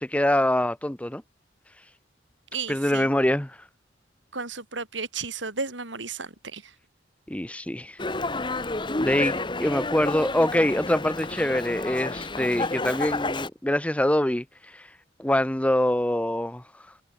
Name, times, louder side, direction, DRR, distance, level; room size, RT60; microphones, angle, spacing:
voice 1, 0.0-1.2 2.7-3.6 7.3-8.0 9.0-14.9 15.2-16.6, left 1 dB, 5° left, 0.7 m, -24 dB
voice 2, 2.5-3.1 4.3-6.6, right 4 dB, 80° right, 7.9 m, -33 dB
Dog, 8.0-13.5, left 2 dB, 25° left, 1.5 m, -30 dB
head